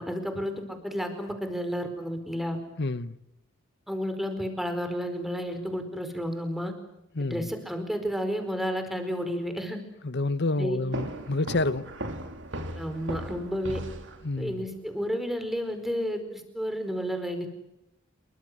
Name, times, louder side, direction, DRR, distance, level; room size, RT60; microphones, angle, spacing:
voice 1, 0.0-2.6 3.9-6.7 7.2-9.8 10.6-10.8 12.8-13.8 14.4-17.5, equal, ahead, 4.8 m, -31 dB
voice 2, 2.8-3.2 7.1-7.5 10.0-11.9 14.2-14.7, left 2 dB, 55° left, 1.2 m, -29 dB
sound 1, 10.9-14.6, right 1 dB, 60° right, 3.2 m, -37 dB
28.0 x 24.0 x 8.1 m
head